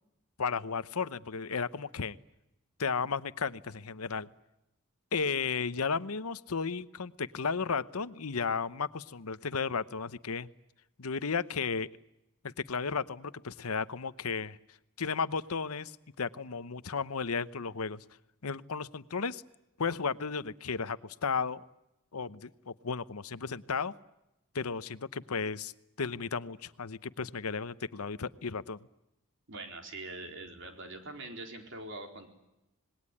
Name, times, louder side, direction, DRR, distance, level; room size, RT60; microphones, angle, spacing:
voice 1, 0.4-2.2 2.8-4.3 5.1-10.5 11.0-11.9 12.4-14.6 15.0-18.0 18.4-19.4 19.8-21.6 22.1-23.9 24.5-25.7 26.0-28.8, left 5 dB, 90° left, 15 dB, 0.9 m, -34 dB
voice 2, 29.5-32.3, right 2 dB, 55° right, 4 dB, 4.1 m, -43 dB
26.0 x 20.5 x 9.8 m, 0.92 s
head